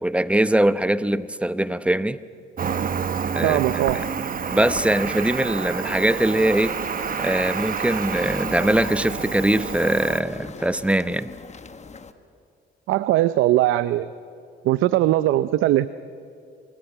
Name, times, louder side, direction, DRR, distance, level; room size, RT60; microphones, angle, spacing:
voice 1, 0.0-2.2 3.3-3.8 4.5-6.8 7.2-11.3, right 1 dB, 5° right, 14 dB, 0.8 m, -22 dB
Cricket, 2.6-10.2, right 6 dB, 45° right, 1.2 m, -28 dB
voice 2, 3.4-4.0 12.9-14.1 14.6-15.9, right 14 dB, 90° right, 14 dB, 0.6 m, -20 dB
sound 1, 6.1-12.1, left 5 dB, 35° left, 1.3 m, -40 dB
26.0 x 19.0 x 10.0 m, 2.5 s
cardioid pair, 90°, 20 cm